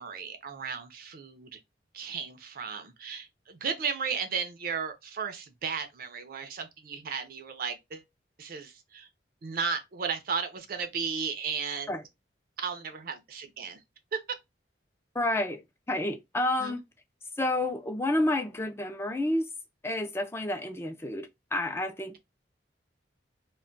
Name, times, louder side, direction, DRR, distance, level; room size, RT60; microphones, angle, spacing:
voice 1, 0.0-1.6 1.9-8.0 8.4-9.1 9.4-12.0 12.6-13.8 14.1-14.4 16.6-16.8, right 6 dB, 55° right, 0.5 m, -35 dB
voice 2, 15.2-15.6 15.9-16.8 17.4-19.5 19.8-22.2, left 1 dB, 15° left, 0.3 m, -29 dB
2.2 x 2.1 x 3.8 m
head